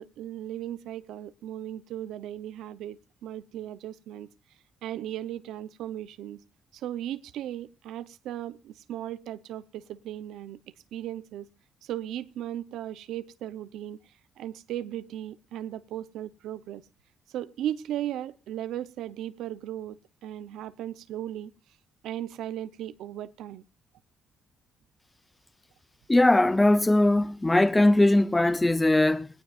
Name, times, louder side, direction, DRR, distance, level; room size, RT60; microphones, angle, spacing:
voice 1, 0.0-4.3 4.8-6.4 6.7-10.6 10.9-11.5 11.8-14.0 14.4-16.8 17.3-21.5 22.0-23.6, right 12 dB, 85° right, 0.8 m, -36 dB
voice 2, 26.1-29.3, left 1 dB, 15° left, 0.6 m, -20 dB
20.0 x 17.5 x 2.5 m
cardioid pair, 90°, 0 cm